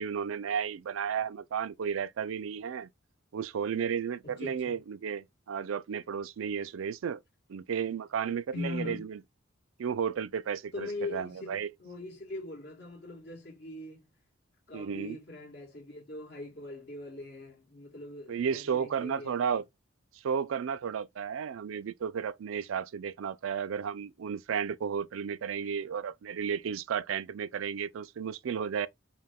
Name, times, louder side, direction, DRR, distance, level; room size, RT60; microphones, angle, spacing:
voice 1, 0.0-2.9 3.3-7.2 7.5-9.2 9.8-11.7 14.7-15.2 18.3-19.6 20.2-28.9, right 7 dB, 80° right, 0.4 m, -33 dB
voice 2, 4.2-4.8 8.5-9.0 10.7-14.1 14.7-19.5 25.6-25.7, left 2 dB, 55° left, 1.8 m, -41 dB
5.3 x 2.2 x 3.5 m
head